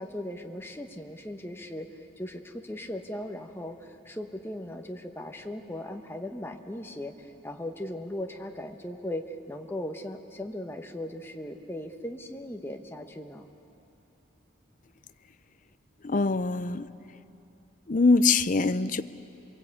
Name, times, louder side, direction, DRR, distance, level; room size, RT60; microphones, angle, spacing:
voice 1, 0.0-1.9 2.2-13.5, left 1 dB, 10° left, 4 dB, 1.1 m, -38 dB
voice 2, 16.0-16.9 17.9-19.0, left 3 dB, 40° left, 12 dB, 0.6 m, -23 dB
28.0 x 22.0 x 8.5 m, 2.9 s
head